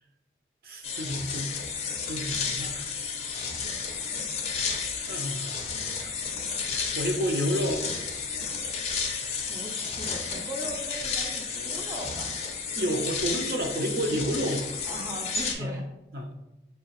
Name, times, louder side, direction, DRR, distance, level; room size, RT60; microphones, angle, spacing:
voice 1, 0.6-1.6 2.1-2.8 5.1-6.1 6.9-7.8 12.8-14.7 15.6-15.8 16.1-16.3, equal, 55° right, 3 dB, 0.6 m, -30 dB
sound 1, 0.8-15.5, left 5 dB, 35° left, 0.6 m, -32 dB
voice 2, 9.5-12.5 14.8-15.8, right 1 dB, 20° right, 0 dB, 0.4 m, -39 dB
4.7 x 2.9 x 2.9 m, 0.95 s
head